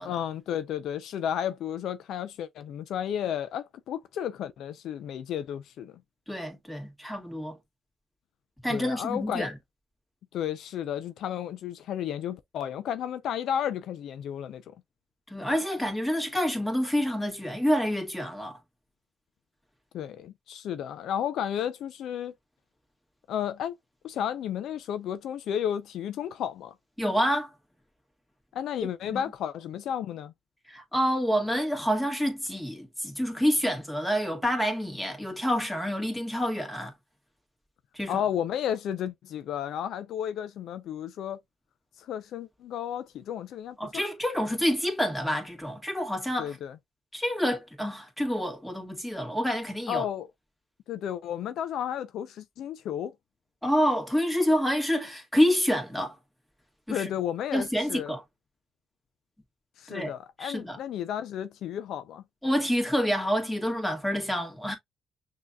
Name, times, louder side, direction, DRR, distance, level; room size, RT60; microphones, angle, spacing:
voice 1, 0.0-5.9 8.7-9.5 10.3-14.6 19.9-22.3 23.3-23.7 24.0-26.7 28.5-30.3 38.1-41.4 42.0-44.1 46.4-46.8 49.9-50.3 50.9-53.1 56.9-58.1 59.8-62.2, left 9 dB, 75° left, 0.4 m, -32 dB
voice 2, 6.3-7.6 8.6-9.5 15.3-18.6 27.0-27.5 29.1-29.2 30.7-36.9 37.9-38.2 43.8-46.6 47.1-50.0 53.6-56.2 56.9-57.1 57.5-58.2 59.9-60.1 60.4-60.8 62.4-64.8, equal, 5° left, 1.7 m, -28 dB
6.1 x 2.7 x 2.3 m
cardioid pair, 90°, 0 cm